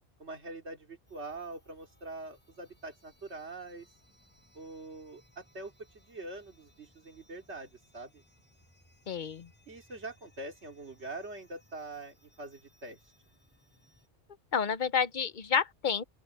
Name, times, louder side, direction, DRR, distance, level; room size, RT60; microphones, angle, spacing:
voice 1, 0.2-3.9 4.5-8.2 9.7-13.0, right 2 dB, 80° right, 3.0 m, -44 dB
sound 1, 1.1-14.1, equal, 10° left, 7.3 m, -66 dB
voice 2, 9.1-9.5 14.5-16.0, left 6 dB, 50° left, 0.8 m, -29 dB
open air
omnidirectional pair, 1.1 m